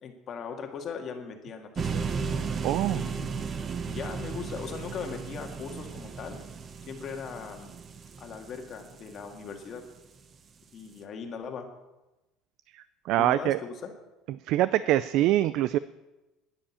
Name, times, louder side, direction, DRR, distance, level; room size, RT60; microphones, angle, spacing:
voice 1, 0.0-2.1 2.9-3.5 3.9-6.4 6.8-7.7 8.2-9.9 10.7-11.7 13.2-13.9, left 6 dB, 35° left, 4 dB, 2.0 m, -39 dB
sound 1, 1.8-9.8, right 5 dB, 25° right, 0.9 m, -35 dB
voice 2, 2.6-3.0 13.1-13.6 14.5-15.8, right 14 dB, 55° right, 16 dB, 0.4 m, -24 dB
10.5 x 10.0 x 8.6 m, 1.0 s
cardioid pair, 155°, 0 cm